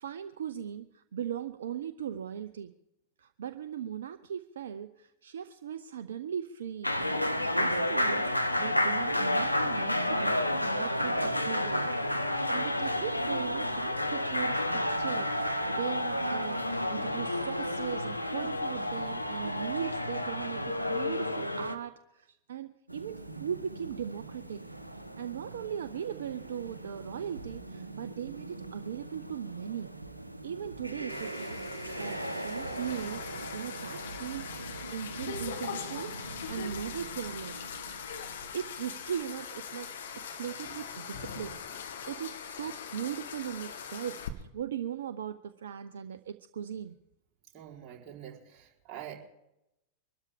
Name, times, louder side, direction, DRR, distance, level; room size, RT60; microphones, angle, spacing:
voice 1, 0.0-2.7 3.2-10.4 10.7-11.9 12.5-24.6 25.2-29.9 30.4-34.5 34.9-38.0 38.5-47.0, right 9 dB, 65° right, 11 dB, 0.6 m, -39 dB
sound 1, 6.8-21.7, left 1 dB, 85° left, 0.9 m, -30 dB
sound 2, 22.9-39.5 40.0-40.1 40.6-40.7, right 2 dB, 85° right, 0.9 m, -42 dB
sound 3, 31.1-44.3, left 7 dB, 60° left, 1.5 m, -41 dB
voice 2, 47.5-49.2, right 10 dB, 30° right, -3 dB, 4.0 m, -45 dB
24.0 x 13.0 x 3.6 m, 0.86 s
figure-of-eight pair, 90°, 0 cm